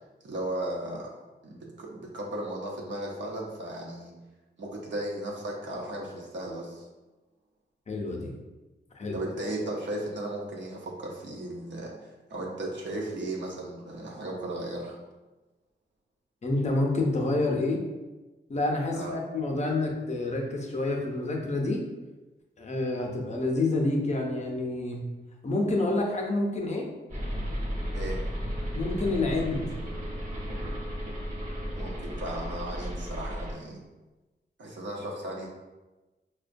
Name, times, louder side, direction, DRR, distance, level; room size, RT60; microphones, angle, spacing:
voice 1, 0.2-1.1 1.4-4.1 4.6-6.8 9.1-15.0 18.9-19.2 27.9-28.2 31.7-33.8 34.6-35.5, right 1 dB, 75° right, -2 dB, 0.8 m, -36 dB
voice 2, 7.9-8.3 8.9-9.2 16.4-17.8 18.5-21.8 22.6-25.0 25.4-26.9 28.7-29.7, left 2 dB, 35° left, 0 dB, 0.6 m, -28 dB
sound 1, 27.1-33.6, equal, 35° right, 1.0 m, -34 dB
5.7 x 2.2 x 2.5 m, 1.2 s
wide cardioid pair, 160°, 19 cm